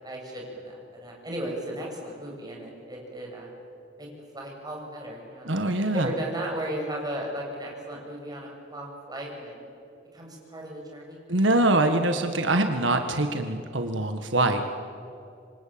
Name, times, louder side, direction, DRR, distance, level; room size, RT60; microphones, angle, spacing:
voice 1, 0.0-3.5 4.0-4.1 4.3-5.5 5.9-9.5 10.1-11.2, right 1 dB, 20° right, -1 dB, 7.1 m, -35 dB
voice 2, 5.4-6.1 11.3-14.6, right 2 dB, 80° right, 6 dB, 1.7 m, -24 dB
27.0 x 25.0 x 8.8 m, 2.5 s
head